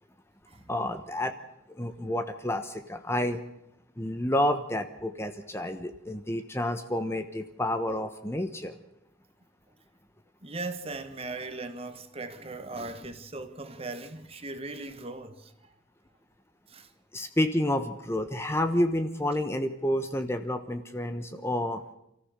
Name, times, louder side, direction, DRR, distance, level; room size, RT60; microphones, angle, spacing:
voice 1, 0.7-1.3 1.8-3.4 4.0-8.7 17.1-21.8, left 1 dB, 15° left, 1.0 m, -29 dB
voice 2, 10.4-15.7 16.7-16.9, right 2 dB, 30° right, 1.6 m, -39 dB
27.5 x 14.5 x 6.7 m
head